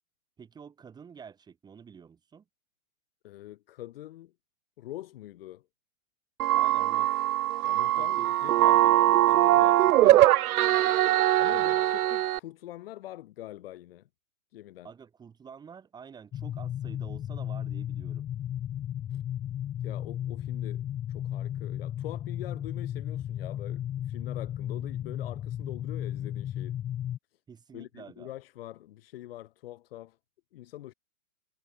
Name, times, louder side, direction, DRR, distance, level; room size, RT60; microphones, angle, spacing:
voice 1, 0.4-2.4 6.5-7.2 7.9-8.3 8.6-9.0 9.3-9.7 11.5-11.9 14.8-18.3 27.5-28.3, right 6 dB, 10° right, 6.2 m, -49 dB
voice 2, 3.2-4.3 4.8-5.7 7.6-10.4 11.4-14.1 14.5-14.9 19.1-19.2 19.8-20.8 21.1-26.8 27.7-30.2 30.5-30.9, left 14 dB, 40° left, 5.7 m, -44 dB
sound 1, 6.4-12.4, right 14 dB, 85° right, 0.5 m, -22 dB
sound 2, 16.3-27.2, left 11 dB, 10° left, 1.1 m, -34 dB
hypercardioid pair, 165°, 43 cm